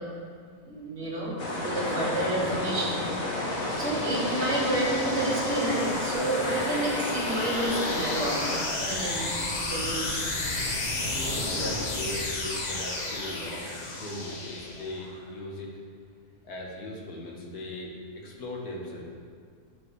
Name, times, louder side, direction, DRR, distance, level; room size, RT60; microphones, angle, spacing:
voice 1, 0.6-3.1 3.7-8.4 8.8-9.3 9.6-10.2 10.5-10.7, right 1 dB, 50° right, -8 dB, 1.6 m, -30 dB
sound 1, 1.4-8.6, left 1 dB, 65° left, 1.5 m, -31 dB
sound 2, 2.0-15.2, left 2 dB, 40° left, 0.7 m, -34 dB
sound 3, 3.7-9.7, right 2 dB, 75° right, 1.3 m, -42 dB
voice 2, 11.0-15.7 16.4-19.1, left 1 dB, 90° left, -3 dB, 1.8 m, -38 dB
11.5 x 4.6 x 3.2 m, 2.1 s
omnidirectional pair, 1.6 m